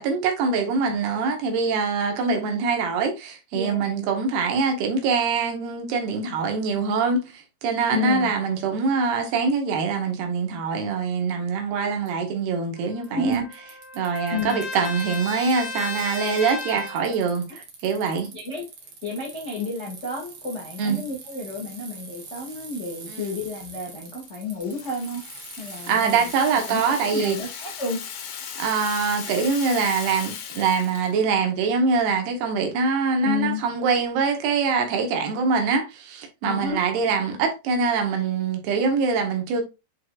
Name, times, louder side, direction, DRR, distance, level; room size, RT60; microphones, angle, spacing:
voice 1, 0.0-13.4 13.9-18.3 20.8-21.0 23.1-23.3 25.9-27.4 28.6-39.6, right 5 dB, 75° right, 3.3 m, -24 dB
voice 2, 3.5-3.9 7.9-8.3 13.1-13.4 14.3-14.6 18.3-18.6 19.0-25.2 25.6-26.3 26.7-28.0 33.2-33.6 36.4-36.8, left 3 dB, 35° left, 1.1 m, -30 dB
Bicycle, 12.1-12.2 13.0-13.1 13.3-15.5 15.8-27.7, right 4 dB, 55° right, 1.6 m, -43 dB
Trumpet, 12.8-17.2, left 2 dB, 50° left, 2.0 m, -34 dB
Rattle (instrument), 24.2-31.1, left 8 dB, 75° left, 3.4 m, -37 dB
8.2 x 4.7 x 2.5 m
omnidirectional pair, 4.9 m